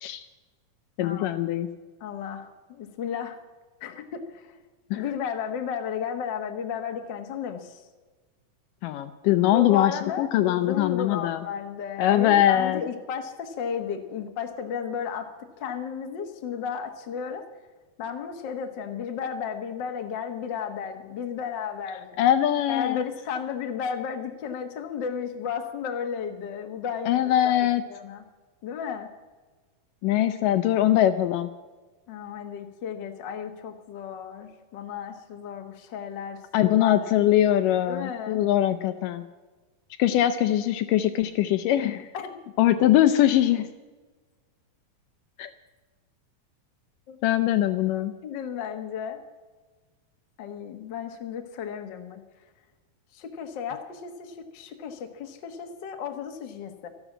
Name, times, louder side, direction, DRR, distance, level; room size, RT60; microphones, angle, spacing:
voice 1, 1.0-1.7 4.9-5.0 8.8-11.4 12.0-12.8 22.2-23.0 27.1-27.8 30.0-31.5 36.5-39.2 40.0-42.1 42.6-43.7 45.4-45.5 47.2-48.1, left 12 dB, 80° left, 10 dB, 2.1 m, -22 dB
voice 2, 2.0-3.4 3.8-4.5 4.9-7.8 9.5-17.5 18.0-22.2 22.7-27.6 27.9-28.2 28.6-29.1 32.1-37.1 37.9-38.4 42.1-42.4 47.1-47.2 47.9-49.2 50.4-52.2 53.1-56.9, left 7 dB, 55° left, 5 dB, 1.3 m, -34 dB
13.5 x 12.0 x 7.4 m, 1.3 s
omnidirectional pair, 4.2 m